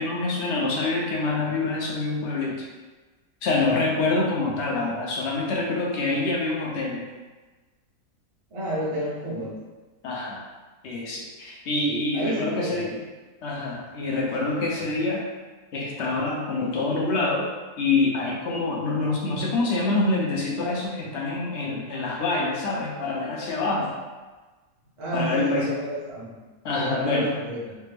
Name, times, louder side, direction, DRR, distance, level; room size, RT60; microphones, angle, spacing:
voice 1, 0.0-2.6 3.4-7.1 10.0-10.4 10.8-13.0 13.4-15.2 15.7-17.4 17.8-23.9 25.1-25.8 26.6-27.3, left 3 dB, 60° left, -2 dB, 0.8 m, -26 dB
voice 2, 8.5-9.6 12.1-12.8 25.0-26.3 26.7-27.7, right 1 dB, 30° right, -6 dB, 0.6 m, -30 dB
3.3 x 2.0 x 3.2 m, 1.3 s
omnidirectional pair, 1.6 m